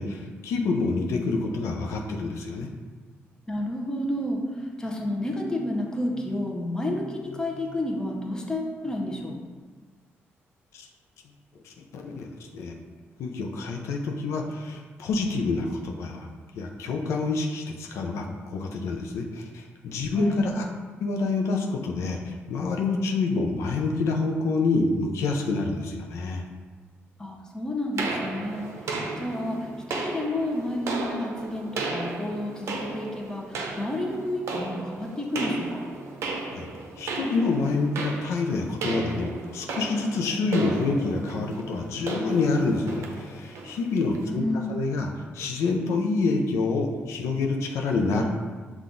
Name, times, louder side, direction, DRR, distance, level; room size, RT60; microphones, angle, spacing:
voice 1, 0.0-2.7 10.7-10.9 11.6-12.3 12.5-12.7 13.2-16.3 16.6-20.7 21.0-26.4 36.5-36.7 37.0-44.4 44.7-48.2, left 3 dB, 90° left, 1 dB, 0.5 m, -27 dB
voice 2, 3.5-9.4 20.1-20.5 27.2-35.9 44.2-44.8, left 1 dB, 15° left, 0 dB, 0.7 m, -30 dB
sound 1, 28.0-44.3, right 3 dB, 75° right, 0.6 m, -35 dB
5.7 x 2.4 x 3.8 m, 1.4 s
cardioid pair, 100°, 5 cm